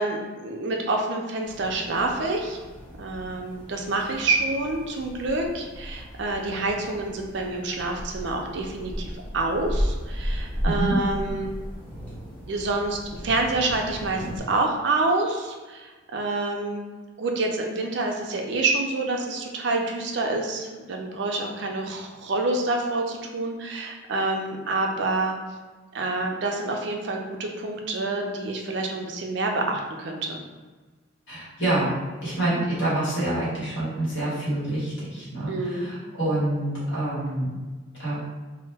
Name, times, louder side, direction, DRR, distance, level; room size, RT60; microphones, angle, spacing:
voice 1, 0.0-2.6 3.0-11.5 12.5-16.8 17.2-25.3 25.9-30.4 35.5-35.9, right 2 dB, 60° right, 2 dB, 0.4 m, -27 dB
sound 1, 1.4-14.4, equal, 5° left, 0.5 m, -35 dB
voice 2, 10.6-11.0 31.3-31.9 32.2-37.5 38.0-38.2, right 1 dB, 60° left, -9 dB, 1.0 m, -27 dB
2.1 x 2.1 x 3.3 m, 1.3 s
head